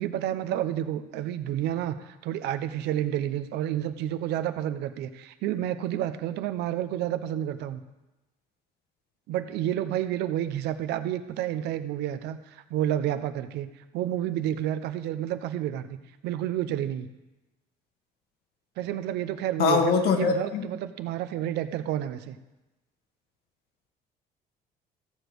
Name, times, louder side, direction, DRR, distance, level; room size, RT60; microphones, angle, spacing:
voice 1, 0.0-7.8 9.3-13.7 13.9-15.9 16.2-17.1 18.8-22.4, right 11 dB, 85° right, 10 dB, 0.8 m, -30 dB
voice 2, 19.6-20.6, left 5 dB, 70° left, 4 dB, 1.7 m, -23 dB
14.5 x 5.1 x 7.9 m, 1.0 s
cardioid pair, 110°, 17 cm